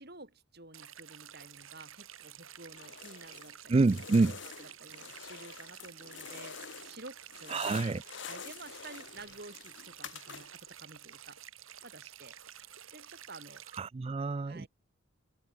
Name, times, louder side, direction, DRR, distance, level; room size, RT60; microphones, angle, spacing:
voice 1, 0.0-3.8 4.3-7.9 8.3-11.4 11.8-12.3 12.9-13.6 14.4-14.7, right 2 dB, 50° right, 5.4 m, -51 dB
sound 1, 0.7-13.8, right 10 dB, 75° right, 5.2 m, -51 dB
sound 2, 2.7-3.5 3.8-7.0 7.3-10.7, left 7 dB, 55° left, 1.1 m, -47 dB
voice 2, 3.7-4.3 7.5-8.0 13.8-14.7, right 3 dB, 25° right, 0.3 m, -27 dB
head